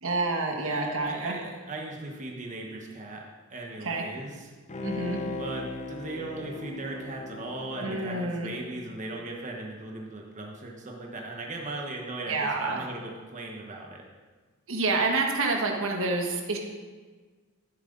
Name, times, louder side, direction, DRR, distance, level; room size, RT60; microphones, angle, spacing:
voice 1, 0.0-1.3 3.8-4.0 4.8-5.2 7.8-8.5 12.3-12.8 14.7-16.6, right 3 dB, 65° right, 1 dB, 1.6 m, -28 dB
voice 2, 0.6-4.5 5.4-14.0, right 2 dB, 35° right, -1 dB, 1.3 m, -38 dB
Bowed string instrument, 4.7-9.3 9.7-9.8, left 2 dB, 35° left, 0.7 m, -38 dB
12.5 x 10.5 x 4.0 m, 1.4 s
head